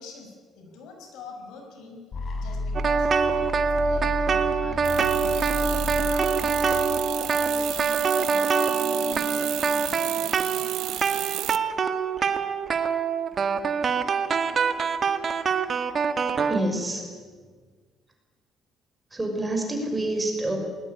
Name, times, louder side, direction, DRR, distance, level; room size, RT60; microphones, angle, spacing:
voice 1, 0.0-2.0 2.3-4.9 5.1-9.5, left 4 dB, 80° left, 3 dB, 6.3 m, -45 dB
sound 1, 2.1-8.0, left 2 dB, 45° left, 4.5 m, -33 dB
sound 2, 2.7-16.6, right 5 dB, 40° right, 1.7 m, -25 dB
sound 3, 4.8-11.6, right 14 dB, 75° right, 0.8 m, -33 dB
voice 2, 16.5-17.1 19.1-20.6, right 2 dB, 15° right, 2 dB, 5.7 m, -27 dB
20.0 x 20.0 x 10.0 m, 1.5 s
cardioid pair, 130°, 0 cm